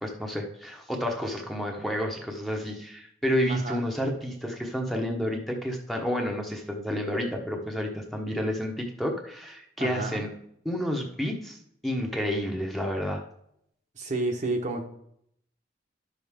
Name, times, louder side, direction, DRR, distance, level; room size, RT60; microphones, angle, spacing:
voice 1, 0.0-10.3 10.6-11.6 11.8-13.2, equal, ahead, 0 dB, 1.1 m, -30 dB
voice 2, 3.5-3.8 9.8-10.2 14.0-14.8, right 2 dB, 40° right, 2 dB, 1.1 m, -30 dB
11.5 x 6.4 x 3.6 m, 0.72 s
head